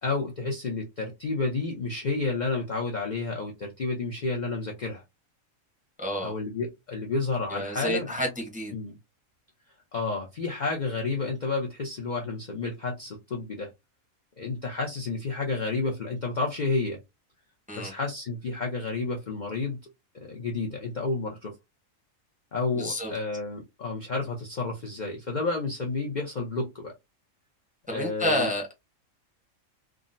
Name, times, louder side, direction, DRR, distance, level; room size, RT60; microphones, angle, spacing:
voice 1, 0.0-5.0 6.2-8.1 8.7-9.0 9.9-13.7 14.4-17.0 17.8-19.8 20.1-21.5 22.5-26.9 27.9-28.5, left 3 dB, 45° left, 0.6 m, -30 dB
voice 2, 6.0-6.4 7.5-8.7 17.7-17.9 22.7-23.1 27.9-28.7, equal, 5° right, 0.7 m, -29 dB
3.6 x 2.0 x 2.5 m
omnidirectional pair, 1.4 m